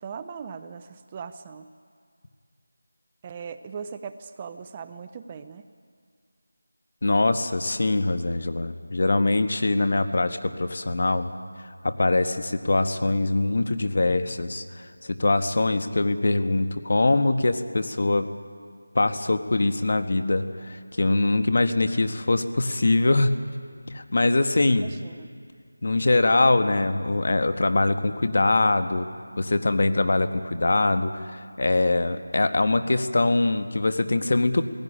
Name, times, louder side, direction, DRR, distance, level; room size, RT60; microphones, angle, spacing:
voice 1, 0.0-1.7 3.2-5.7 24.8-25.3, right 6 dB, 15° right, 11 dB, 0.4 m, -39 dB
voice 2, 7.0-11.3 11.8-18.3 18.9-23.4 23.9-24.9 25.8-29.1 29.4-34.6, left 2 dB, 50° left, 9 dB, 1.2 m, -23 dB
19.0 x 16.0 x 10.0 m, 2.1 s
figure-of-eight pair, 175°, 0 cm